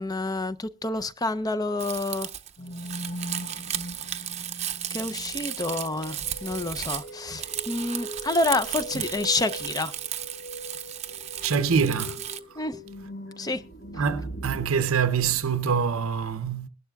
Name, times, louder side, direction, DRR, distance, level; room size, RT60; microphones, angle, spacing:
voice 1, 0.0-2.3 4.9-9.9 12.6-12.8 13.4-13.6, left 2 dB, 15° left, 0.5 m, -28 dB
Crumpling crinkling, 1.8-12.4, right 11 dB, 30° right, 0.7 m, -35 dB
sound 1, 2.6-14.7, equal, 50° left, 1.3 m, -40 dB
voice 2, 11.4-12.2 13.9-16.7, right 6 dB, 70° right, 0.7 m, -25 dB
22.5 x 12.0 x 2.3 m
head